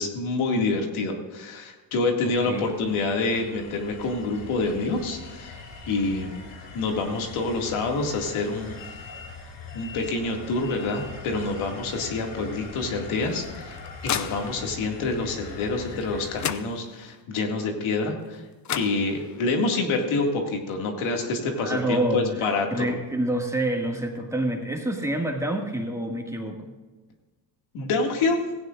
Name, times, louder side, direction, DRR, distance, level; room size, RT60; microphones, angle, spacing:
voice 1, 0.0-6.4 6.7-8.8 9.7-18.4 18.7-22.9 27.7-28.5, left 3 dB, 75° left, 2 dB, 2.3 m, -27 dB
sound 1, 2.4-16.5, left 4 dB, 55° left, 2.7 m, -41 dB
sound 2, 13.2-14.9 16.0-16.1 16.4-17.2 18.3-18.4 18.6-19.5, left 8 dB, 35° left, 0.7 m, -33 dB
voice 2, 21.4-26.7, right 1 dB, 5° right, 1 dB, 2.0 m, -28 dB
16.5 x 16.0 x 2.5 m, 1.2 s
cardioid pair, 90°, 49 cm